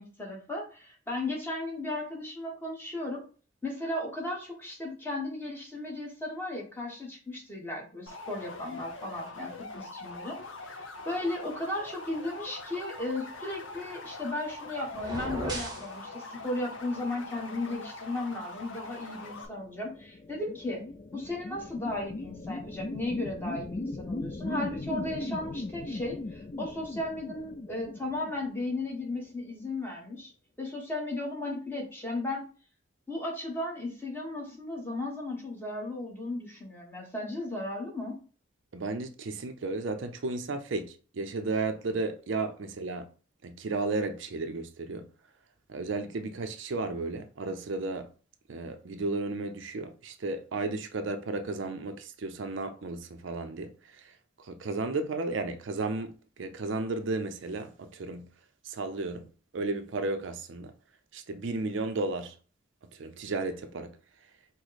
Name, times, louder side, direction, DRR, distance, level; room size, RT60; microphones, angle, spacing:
voice 1, 0.0-3.2 3.6-10.4 10.7-20.8 21.1-30.3 30.6-32.5 33.1-38.2, left 2 dB, 10° left, 1.1 m, -35 dB
sound 1, 8.1-19.5, left 3 dB, 75° left, 0.7 m, -43 dB
sound 2, 14.9-15.9, right 1 dB, 20° right, 0.8 m, -35 dB
sound 3, 19.3-29.1, left 2 dB, 35° left, 0.3 m, -38 dB
voice 2, 38.7-43.0 43.4-45.1 45.7-48.1 48.5-58.3 58.6-59.3 59.5-60.7 61.1-62.3 62.9-63.9, right 3 dB, 70° right, 0.5 m, -34 dB
4.9 x 2.1 x 4.0 m
head